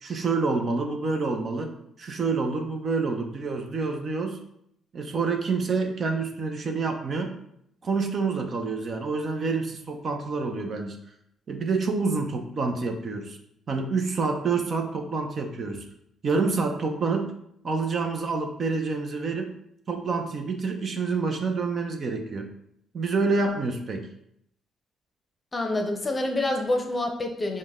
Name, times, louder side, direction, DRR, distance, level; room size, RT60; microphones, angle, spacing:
voice 1, 0.0-1.7 2.0-4.4 4.9-7.3 7.8-11.0 11.5-13.4 13.7-15.8 16.2-17.3 17.6-19.5 19.9-22.5 22.9-24.1, right 4 dB, 50° right, 4 dB, 0.6 m, -27 dB
voice 2, 25.5-27.6, left 2 dB, 25° left, 3 dB, 0.7 m, -27 dB
5.1 x 2.2 x 3.6 m, 0.74 s
cardioid pair, 90°, 0 cm